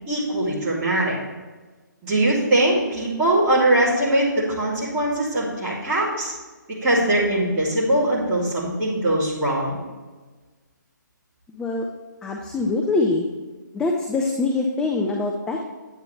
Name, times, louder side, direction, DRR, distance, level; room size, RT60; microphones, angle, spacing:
voice 1, 0.1-1.2 2.0-4.3 4.6-6.3 6.8-9.8, right 1 dB, 20° right, -8 dB, 2.9 m, -21 dB
voice 2, 11.5-11.9 12.2-13.3 13.7-15.7, left 3 dB, 5° left, 0 dB, 0.4 m, -24 dB
9.6 x 8.4 x 3.3 m, 1.3 s
figure-of-eight pair, 140°, 11 cm